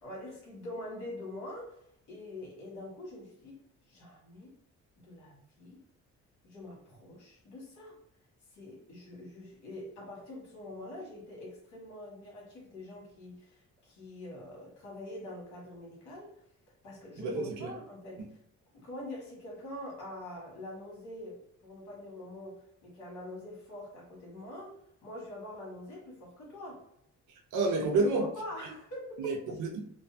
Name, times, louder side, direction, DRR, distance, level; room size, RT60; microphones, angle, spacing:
voice 1, 0.0-1.8 2.1-3.6 3.9-4.5 5.0-5.8 6.4-8.0 8.5-16.3 16.8-18.2 18.7-24.7 25.0-26.8 28.0-29.5, left 1 dB, 70° left, -3 dB, 1.2 m, -44 dB
voice 2, 17.2-17.7 27.5-28.2 29.2-29.8, right 3 dB, 85° right, 1 dB, 0.6 m, -29 dB
2.5 x 2.2 x 2.6 m, 0.73 s
cardioid pair, 90°, 30 cm